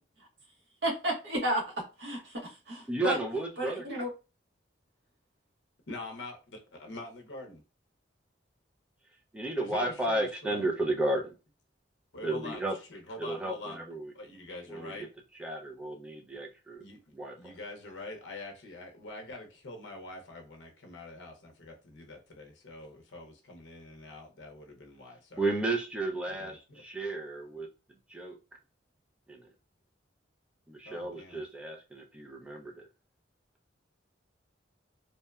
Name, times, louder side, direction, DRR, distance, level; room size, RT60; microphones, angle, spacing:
voice 1, 0.8-3.2 3.6-4.1, right 1 dB, 65° right, 0.9 m, -32 dB
voice 2, 2.9-3.8 9.3-11.3 12.2-12.8 13.2-14.1 14.7-14.9 15.4-16.8 17.1-17.5 25.4-26.5 26.8-27.7 28.1-28.4 29.3-29.5 30.7-32.9, right 2 dB, 5° right, 0.3 m, -33 dB
voice 3, 5.9-7.6 9.5-10.7 12.1-13.8 14.1-15.1 16.8-17.0 17.4-25.5 26.3-26.8 30.8-31.4, left 2 dB, 70° left, 0.6 m, -45 dB
2.7 x 2.1 x 2.2 m
head